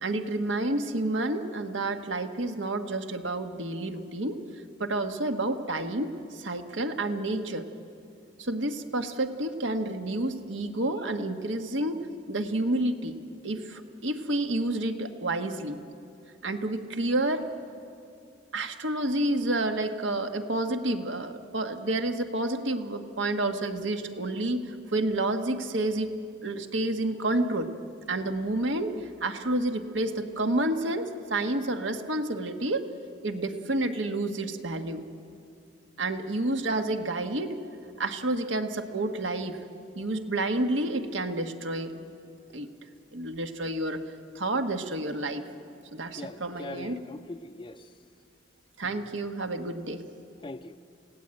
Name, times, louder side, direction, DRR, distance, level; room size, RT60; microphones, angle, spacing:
voice 1, 0.0-4.4 4.8-6.1 6.4-7.7 8.4-12.0 12.3-13.1 13.4-15.8 16.4-17.4 18.5-26.1 26.4-27.7 28.1-32.9 33.2-35.0 36.0-37.6 38.0-39.6 39.9-41.9 42.5-42.7 43.1-44.0 44.3-45.4 45.9-47.0 48.8-50.0, right 2 dB, 80° right, 6 dB, 1.5 m, -29 dB
voice 2, 46.2-47.9 50.4-50.8, left 2 dB, 25° left, 6 dB, 0.5 m, -41 dB
28.5 x 17.5 x 8.9 m, 2.6 s
head